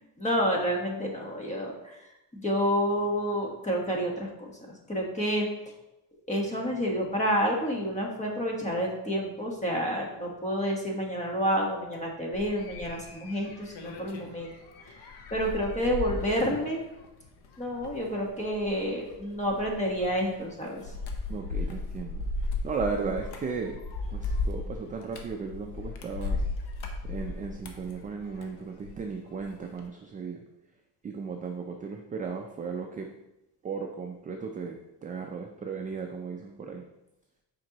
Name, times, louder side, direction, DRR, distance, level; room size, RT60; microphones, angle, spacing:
voice 1, 0.2-5.7 6.3-14.5 14.8-16.8 17.6-21.0, equal, 15° left, -1 dB, 1.3 m, -29 dB
sound 1, 12.3-29.1 29.4-29.8, left 3 dB, 65° left, 1.0 m, -36 dB
voice 2, 21.3-23.8 24.1-26.4 27.0-30.4 31.0-33.1 33.6-36.9, right 5 dB, 20° right, 2 dB, 0.3 m, -36 dB
7.6 x 5.3 x 2.9 m, 0.90 s
cardioid pair, 145°, 43 cm